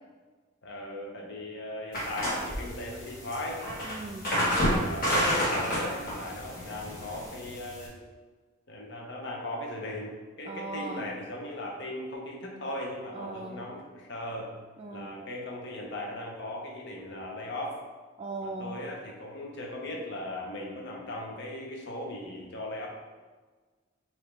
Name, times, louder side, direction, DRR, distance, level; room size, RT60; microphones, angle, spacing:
voice 1, 0.6-3.6 4.3-8.0 8.7-14.5 14.9-17.8 18.4-22.9, left 1 dB, 65° left, 0 dB, 0.8 m, -38 dB
sound 1, 1.9-7.9, equal, 45° left, 1.4 m, -30 dB
voice 2, 3.8-4.3 10.5-11.1 13.1-13.6 14.8-15.2 18.2-18.7, right 3 dB, 30° right, -1 dB, 0.3 m, -38 dB
4.9 x 2.8 x 3.3 m, 1.4 s
head